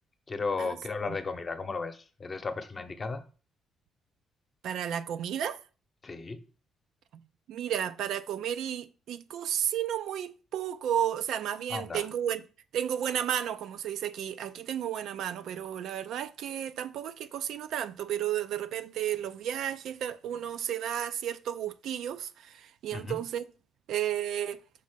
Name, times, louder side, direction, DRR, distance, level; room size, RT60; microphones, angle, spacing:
voice 1, 0.3-3.2 6.0-6.4 11.7-12.1 22.9-23.2, left 4 dB, 35° left, 0.8 m, -34 dB
voice 2, 4.6-5.6 7.1-7.2 7.5-12.4 12.7-23.5 23.9-24.6, right 10 dB, 80° right, 0.3 m, -33 dB
5.4 x 3.7 x 5.0 m
cardioid pair, 90°, 0 cm